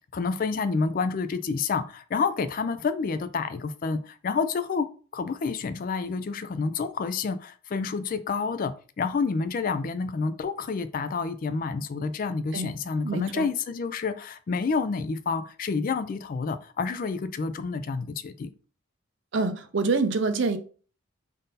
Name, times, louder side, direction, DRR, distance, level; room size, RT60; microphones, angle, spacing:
voice 1, 0.1-4.9 5.1-18.5, left 4 dB, 40° left, 0.3 m, -29 dB
voice 2, 13.0-13.5 19.3-20.6, right 3 dB, 60° right, 0.5 m, -26 dB
3.7 x 2.6 x 4.0 m
head